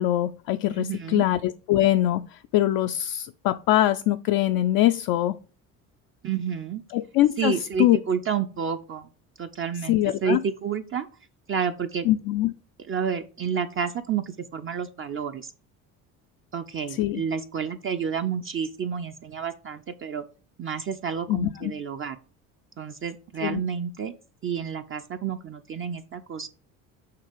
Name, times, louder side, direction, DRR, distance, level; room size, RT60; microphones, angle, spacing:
voice 1, 0.0-5.4 6.9-8.0 9.9-10.4 12.1-12.5 16.9-17.2 21.3-21.7 23.4-23.6, left 14 dB, 60° left, 0.5 m, -23 dB
voice 2, 0.7-1.2 6.2-6.8 7.4-9.1 9.4-11.1 11.5-12.1 12.9-15.5 16.5-20.2 20.6-22.2 22.8-24.1 24.4-26.5, right 7 dB, 30° right, 0.5 m, -30 dB
6.7 x 2.9 x 5.0 m
hypercardioid pair, 65°, 40 cm